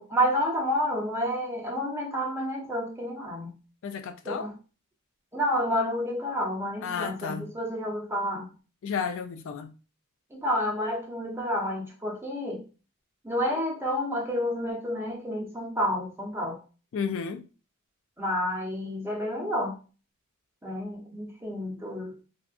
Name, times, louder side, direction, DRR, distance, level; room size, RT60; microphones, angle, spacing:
voice 1, 0.0-3.5 4.2-4.5 5.3-8.5 10.3-12.6 13.2-16.6 18.2-19.8 20.6-22.2, equal, 10° right, 0.8 m, -29 dB
voice 2, 3.8-4.5 6.8-7.5 8.8-9.7 16.9-17.5, left 6 dB, 60° left, 0.3 m, -32 dB
3.4 x 2.5 x 2.4 m
head